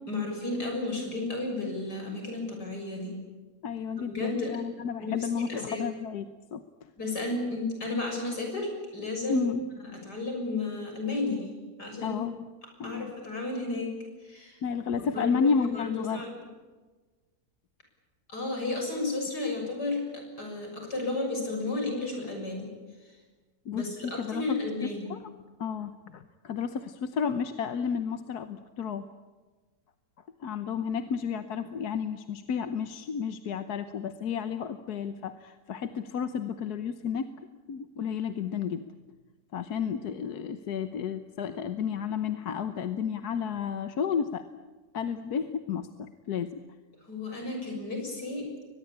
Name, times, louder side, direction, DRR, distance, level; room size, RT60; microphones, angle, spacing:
voice 1, 0.1-3.2 4.1-4.6 5.0-5.9 7.0-9.5 9.9-11.5 11.8-12.2 12.8-13.9 14.2-14.6 15.0-16.3 18.3-22.7 23.7-25.1 47.1-48.5, left 2 dB, 90° left, 2 dB, 7.3 m, -33 dB
voice 2, 3.6-6.6 9.3-9.6 12.0-12.5 12.8-13.1 14.6-16.2 23.6-24.6 25.1-25.3 25.6-29.1 30.4-37.3 37.7-38.8 39.5-44.4 44.9-46.6, left 6 dB, 75° left, 9 dB, 1.5 m, -32 dB
23.0 x 21.0 x 8.7 m, 1.3 s
omnidirectional pair, 1.7 m